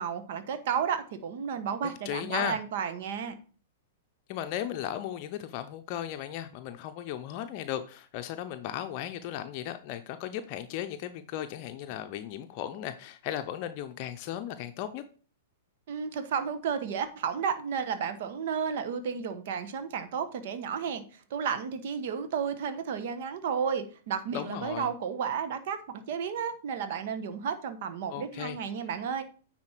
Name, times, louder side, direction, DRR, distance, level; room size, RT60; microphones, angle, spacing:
voice 1, 0.0-3.4 15.9-21.0 21.3-29.2, right 7 dB, 55° right, 1.1 m, -32 dB
voice 2, 2.0-2.6 4.3-15.0 24.3-24.9 28.1-28.6, left 11 dB, 45° left, 0.6 m, -36 dB
9.5 x 4.2 x 4.5 m
hypercardioid pair, 105°, 0 cm